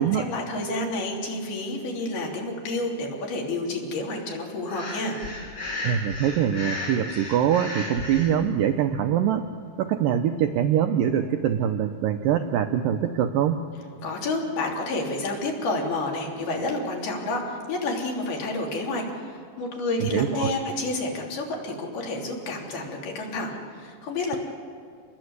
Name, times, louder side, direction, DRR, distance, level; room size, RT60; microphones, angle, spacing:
voice 1, 0.0-5.2 14.0-24.4, left 2 dB, 80° left, -1 dB, 5.5 m, -29 dB
Breathing, 4.7-8.3, left 2 dB, 35° left, 6.8 m, -34 dB
voice 2, 5.8-9.4 9.8-13.7 20.0-20.5, right 9 dB, 75° right, 6 dB, 2.3 m, -23 dB
28.0 x 21.0 x 8.1 m, 2.3 s
omnidirectional pair, 4.4 m